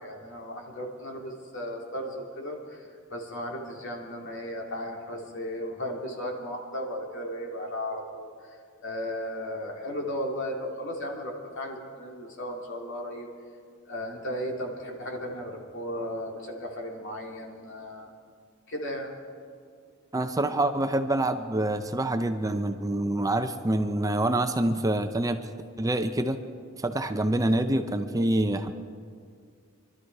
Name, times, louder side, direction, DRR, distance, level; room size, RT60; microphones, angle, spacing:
voice 1, 0.0-13.3 13.9-18.1 18.7-19.1, equal, 60° left, 0 dB, 2.8 m, -35 dB
voice 2, 20.1-25.4 25.8-26.4 26.8-28.7, right 1 dB, 15° right, 8 dB, 0.6 m, -26 dB
25.0 x 12.5 x 4.7 m, 2.2 s
head